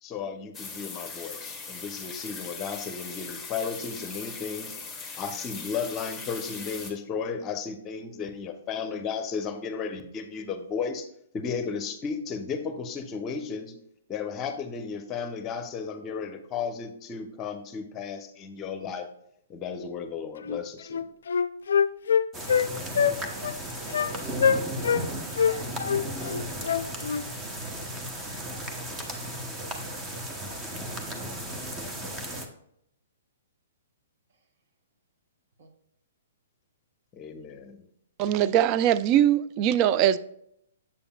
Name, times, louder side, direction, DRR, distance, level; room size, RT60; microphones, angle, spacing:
voice 1, 0.0-4.7 5.2-11.1 11.3-13.7 14.1-19.1 19.5-21.1 37.1-37.9, left 6 dB, 25° left, 8 dB, 0.8 m, -34 dB
sound 1, 0.5-6.9, left 4 dB, 5° left, 1.3 m, -40 dB
Wind instrument woodwind instrument, 20.5-20.6 20.9-22.7 23.0-23.2 23.4-23.6 23.9-24.1 24.4-25.0 25.4-27.3, left 7 dB, 70° left, 0.3 m, -24 dB
sound 2, 22.3-32.5, right 1 dB, 15° right, 0.9 m, -35 dB
voice 2, 22.7-27.1 35.6-35.7, right 3 dB, 55° right, 5 dB, 1.0 m, -49 dB
voice 3, 38.2-40.2, right 11 dB, 35° right, 14 dB, 0.3 m, -21 dB
7.4 x 6.9 x 2.3 m, 0.73 s
hypercardioid pair, 125°, 0 cm